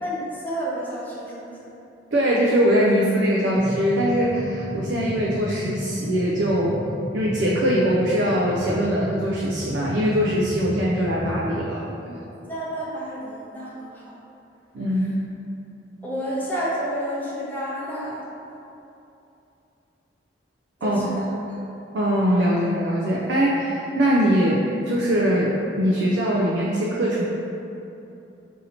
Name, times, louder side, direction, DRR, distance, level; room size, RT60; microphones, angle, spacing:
voice 1, 0.0-1.7 12.4-14.2 16.0-18.2 20.8-21.3, equal, 10° left, -8 dB, 0.7 m, -30 dB
voice 2, 2.1-6.8 7.1-12.2 14.7-15.2 20.8-21.1 21.9-27.2, equal, 80° right, -4 dB, 0.4 m, -22 dB
sound 1, 3.6-11.4, equal, 35° right, 1.0 m, -34 dB
2.8 x 2.7 x 4.1 m, 2.8 s
head